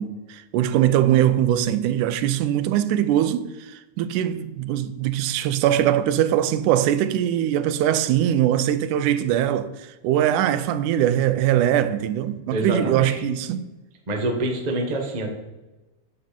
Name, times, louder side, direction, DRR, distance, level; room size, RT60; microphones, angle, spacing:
voice 1, 0.0-9.7 10.0-13.6, right 11 dB, 85° right, 2.1 m, -21 dB
voice 2, 12.5-13.1 14.1-15.3, right 2 dB, 30° right, 0.7 m, -25 dB
9.3 x 7.2 x 5.4 m
omnidirectional pair, 3.5 m